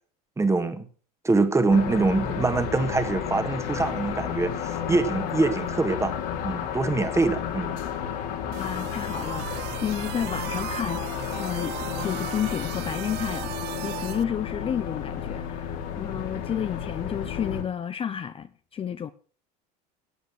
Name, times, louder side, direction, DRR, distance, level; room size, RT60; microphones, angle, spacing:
voice 1, 0.4-0.9 1.2-6.2 6.4-7.8, right 3 dB, 15° right, 1.7 m, -24 dB
sound 1, 1.7-17.6, left 8 dB, 70° left, 3.3 m, -32 dB
voice 2, 8.5-13.6 13.8-19.1, left 8 dB, 25° left, 0.6 m, -31 dB
sound 2, 8.5-14.2, right 17 dB, 55° right, 0.7 m, -37 dB
13.0 x 8.3 x 6.3 m
supercardioid pair, 95°, 20 cm